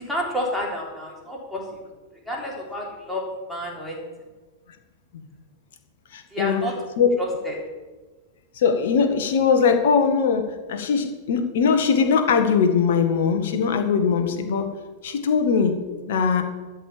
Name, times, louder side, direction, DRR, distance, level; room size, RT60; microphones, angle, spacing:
voice 1, 0.0-1.8 2.3-3.2 3.5-4.0 6.3-6.7 7.2-7.6, equal, ahead, -3 dB, 3.6 m, -29 dB
voice 2, 6.1-6.6 7.0-7.1 8.5-14.7 15.0-15.8 16.1-16.4, left 6 dB, 55° left, 7 dB, 1.5 m, -21 dB
13.5 x 5.2 x 8.7 m, 1.3 s
figure-of-eight pair, 90°, 0 cm